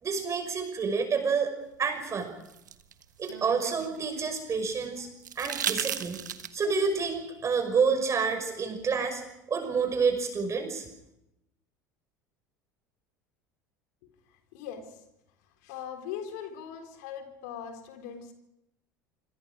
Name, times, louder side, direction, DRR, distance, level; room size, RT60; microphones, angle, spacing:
voice 1, 0.0-1.5 1.8-2.3 3.2-5.1 5.4-6.2 6.5-9.2 9.5-10.8, right 5 dB, 30° right, 6 dB, 6.0 m, -28 dB
sound 1, 2.1-4.3 5.2-6.8 8.4-8.5, right 9 dB, 80° right, 1.3 m, -35 dB
voice 2, 14.5-15.0 15.6-18.3, left 8 dB, 65° left, 6 dB, 3.9 m, -40 dB
26.5 x 25.5 x 5.0 m, 0.84 s
figure-of-eight pair, 70°, 10 cm